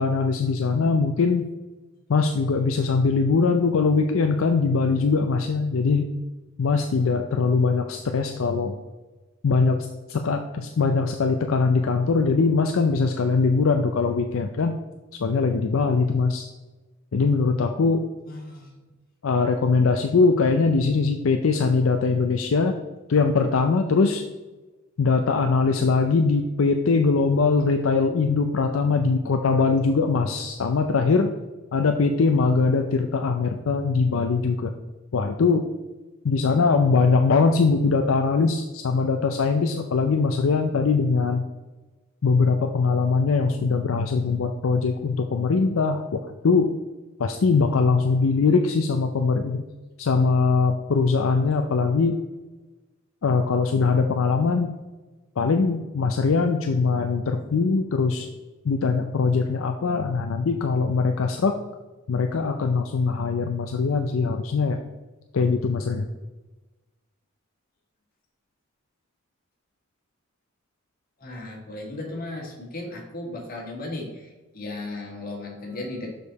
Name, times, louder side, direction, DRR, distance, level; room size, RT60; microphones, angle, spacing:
voice 1, 0.0-1.5 2.1-6.1 6.6-8.8 9.4-14.8 15.1-16.5 17.1-18.1 19.2-22.8 23.1-24.2 25.0-31.3 31.7-34.7 35.1-35.7 36.2-41.4 42.2-46.8 47.2-49.6 50.0-52.2 53.2-54.8 55.4-58.3 58.6-61.5 62.1-64.8 65.3-66.1, left 4 dB, 70° left, 5 dB, 0.5 m, -22 dB
voice 2, 18.3-18.9 71.2-76.1, left 2 dB, 45° left, -1 dB, 1.8 m, -36 dB
6.6 x 5.2 x 4.0 m, 1.2 s
head